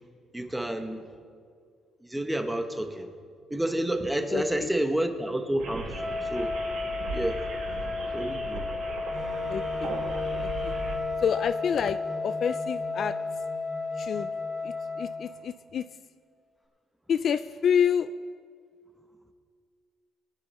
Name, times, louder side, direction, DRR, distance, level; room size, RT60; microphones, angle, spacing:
voice 1, 0.3-1.1 2.0-3.1 3.5-6.5 7.1-7.4 8.1-8.7, right 1 dB, 5° right, 6 dB, 0.9 m, -29 dB
voice 2, 4.3-4.7 9.5-9.9 10.4-10.7 11.2-13.2 14.0-14.3 14.6-15.9 17.1-18.1, left 7 dB, 45° left, 13 dB, 0.3 m, -28 dB
sound 1, 5.6-11.0, right 2 dB, 70° right, 3.3 m, -38 dB
Wind instrument woodwind instrument, 5.9-15.3, left 3 dB, 30° left, 2.6 m, -33 dB
Wind instrument woodwind instrument 2, 9.1-15.2, left 1 dB, 10° left, 3.7 m, -41 dB
22.0 x 9.8 x 4.2 m, 2.1 s
cardioid pair, 155°, 0 cm